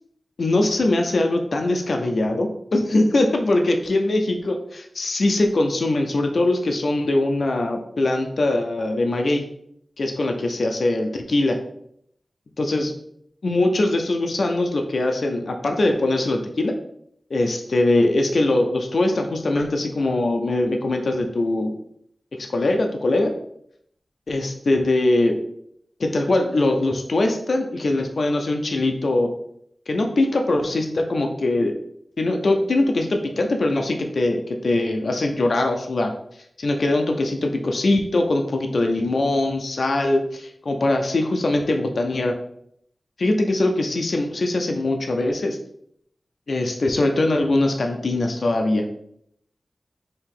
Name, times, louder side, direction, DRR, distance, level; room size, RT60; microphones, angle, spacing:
voice 1, 0.4-9.4 10.0-11.6 12.6-12.9 13.4-16.7 17.3-21.7 22.4-23.3 24.3-25.4 26.0-29.3 29.9-31.7 32.2-36.1 36.6-42.4 43.2-45.6 46.5-48.8, left 2 dB, 70° left, 4 dB, 0.5 m, -22 dB
4.5 x 2.9 x 3.7 m, 0.70 s
wide cardioid pair, 90°, 0 cm